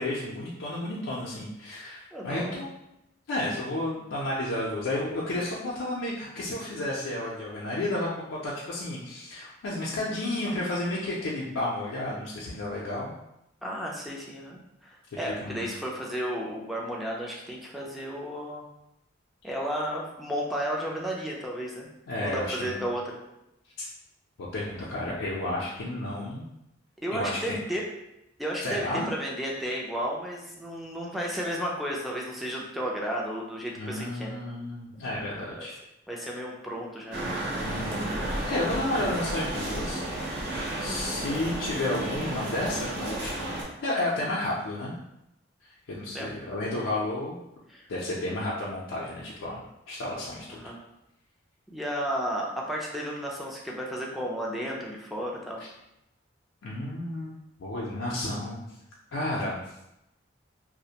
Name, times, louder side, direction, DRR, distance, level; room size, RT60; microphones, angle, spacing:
voice 1, 0.0-2.7 3.3-13.1 15.4-15.7 22.1-22.8 23.8-23.9 24.4-26.4 27.1-27.6 28.6-29.1 33.8-35.8 37.6-38.1 38.4-43.4 43.8-45.0 45.6-47.4 47.9-50.6 56.6-57.3 57.6-58.7 59.1-59.6, left 1 dB, 85° left, -5 dB, 0.4 m, -32 dB
voice 2, 2.1-2.7 13.6-18.6 19.4-21.9 22.2-23.2 27.0-27.8 28.4-34.3 36.1-37.3 46.1-46.3 47.7-47.9 50.5-50.8 51.7-55.6, equal, ahead, -3 dB, 0.3 m, -33 dB
sound 1, 37.1-43.6, right 1 dB, 60° right, 0.6 m, -32 dB
2.4 x 2.1 x 2.7 m, 0.85 s
head